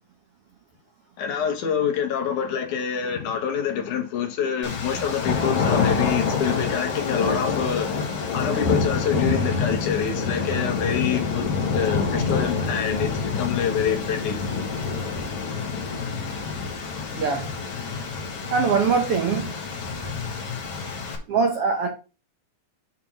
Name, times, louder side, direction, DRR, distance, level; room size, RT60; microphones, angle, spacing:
voice 1, 1.2-8.0 8.3-14.4, left 8 dB, 65° left, 2.4 m, -26 dB
sound 1, 4.6-21.2, left 5 dB, 50° left, 2.2 m, -27 dB
voice 2, 17.1-17.5 18.5-19.5 21.3-21.9, right 5 dB, 75° right, 1.3 m, -22 dB
7.3 x 4.1 x 5.8 m
omnidirectional pair, 4.2 m